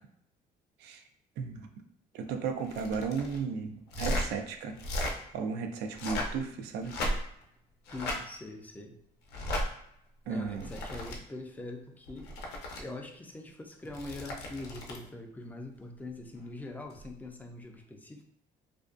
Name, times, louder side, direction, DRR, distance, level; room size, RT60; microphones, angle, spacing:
voice 1, 1.4-1.7 2.1-4.8 5.3-6.9 10.3-10.7, right 5 dB, 80° right, 6 dB, 0.4 m, -34 dB
sound 1, 2.6-3.4 3.9-4.3 4.7-5.1 5.9-6.4 6.8-7.4 7.9-8.2 9.3-9.6 10.4-11.2 12.1-12.8 13.8-15.0 16.9-17.1, left 1 dB, 90° left, 0.5 m, -35 dB
voice 2, 7.9-9.0 10.3-12.3 12.8-18.2, left 2 dB, 10° left, 3 dB, 0.4 m, -43 dB
2.5 x 2.2 x 2.4 m, 0.73 s
cardioid pair, 110°, 17 cm